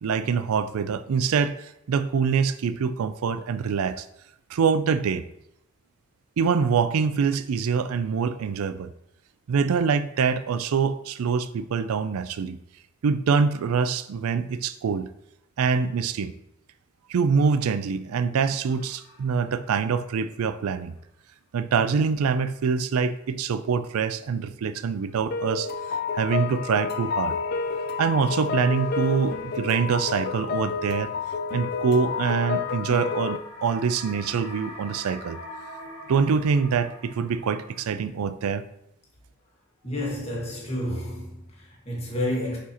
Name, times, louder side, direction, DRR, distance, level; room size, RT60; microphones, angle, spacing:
voice 1, 0.0-4.1 4.5-5.2 6.4-8.9 9.5-12.6 13.0-15.1 15.6-16.3 17.1-20.9 21.5-27.4 28.0-31.1 31.5-35.4 36.1-38.6, right 5 dB, 85° right, 0.4 m, -25 dB
sound 1, 18.7-20.2 20.6-20.7 25.0-37.9, left 1 dB, 80° left, 1.6 m, -46 dB
sound 2, 25.3-33.4, left 6 dB, 45° left, 0.4 m, -29 dB
voice 2, 39.8-42.6, left 1 dB, 30° left, 1.7 m, -30 dB
6.8 x 4.7 x 2.9 m
head